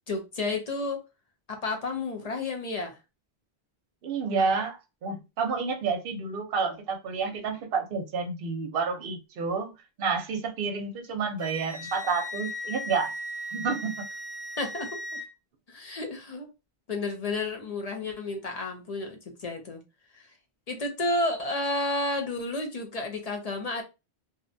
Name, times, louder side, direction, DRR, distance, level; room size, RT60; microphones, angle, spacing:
voice 1, 0.1-1.0 1.5-3.0 14.6-15.2 15.7-16.5 16.9-19.8 20.1-20.2 20.7-23.8, left 2 dB, 45° left, 0.6 m, -31 dB
voice 2, 4.0-9.7 10.0-13.1 13.5-14.1, right 5 dB, 60° right, 0.8 m, -29 dB
Wind instrument woodwind instrument, 11.4-15.3, left 1 dB, 10° left, 1.0 m, -37 dB
2.6 x 2.1 x 2.6 m
omnidirectional pair, 1.1 m